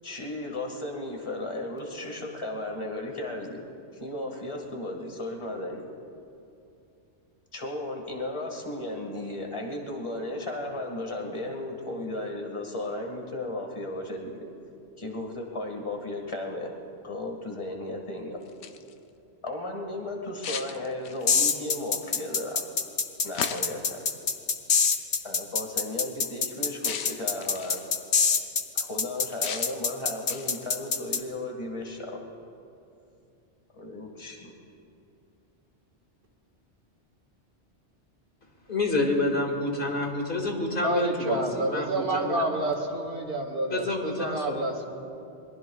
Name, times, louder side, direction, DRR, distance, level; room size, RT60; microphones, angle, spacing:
voice 1, 0.0-3.6 3.9-5.8 7.5-14.3 15.0-16.7 17.0-18.4 19.4-22.6 23.2-24.0 25.2-27.8 28.7-32.2 33.7-34.6, left 1 dB, 25° left, 1 dB, 1.9 m, -35 dB
sound 1, 18.4-18.9 20.4-21.4 23.3-23.9 24.8-25.0 26.8-27.9 29.4-29.9 30.3-30.7, left 7 dB, 85° left, 1.0 m, -36 dB
sound 2, 21.3-31.2, left 5 dB, 65° left, 1.1 m, -25 dB
voice 2, 38.7-42.5 43.7-44.7, left 2 dB, 45° left, 1 dB, 2.3 m, -28 dB
voice 3, 40.8-43.9 44.2-44.9, right 1 dB, 55° right, 2 dB, 1.9 m, -28 dB
26.5 x 22.0 x 2.4 m, 2.6 s
omnidirectional pair, 1.2 m